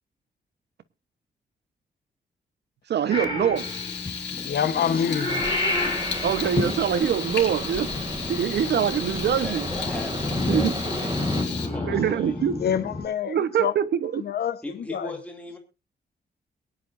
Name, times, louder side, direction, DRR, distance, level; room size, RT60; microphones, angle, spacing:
voice 1, 2.9-3.6 6.2-7.9 8.3-9.7 10.5-10.7 11.9-12.6 13.3-14.2, right 9 dB, 75° right, 1.1 m, -24 dB
Purr / Meow, 3.1-13.0, left 2 dB, 25° left, 5.9 m, -30 dB
Frying (food), 3.6-11.7, left 7 dB, 85° left, 4.4 m, -35 dB
voice 2, 4.4-5.5 11.7-11.8 12.6-13.7 14.2-15.1, left 8 dB, 65° left, 1.1 m, -27 dB
sound 1, 5.3-11.4, right 3 dB, 25° right, 2.5 m, -36 dB
voice 3, 9.4-11.2 11.5-12.4 14.6-15.6, left 1 dB, 10° left, 2.6 m, -38 dB
22.5 x 10.5 x 2.6 m
wide cardioid pair, 150°, 18 cm